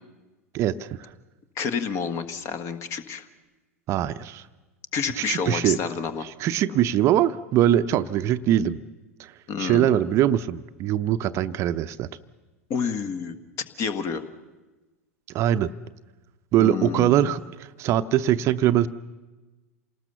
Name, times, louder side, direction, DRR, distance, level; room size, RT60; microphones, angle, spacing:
voice 1, 0.5-1.1 3.9-4.4 5.2-5.8 6.2-8.8 9.2-9.3 9.6-12.1 15.3-15.7 16.5-18.9, right 11 dB, 35° right, 13 dB, 0.7 m, -22 dB
voice 2, 1.6-3.2 4.9-6.3 9.5-9.9 12.7-13.4 13.8-14.2 16.6-17.3, left 6 dB, 35° left, 11 dB, 1.6 m, -29 dB
28.0 x 19.0 x 6.9 m, 1.2 s
figure-of-eight pair, 85°, 8 cm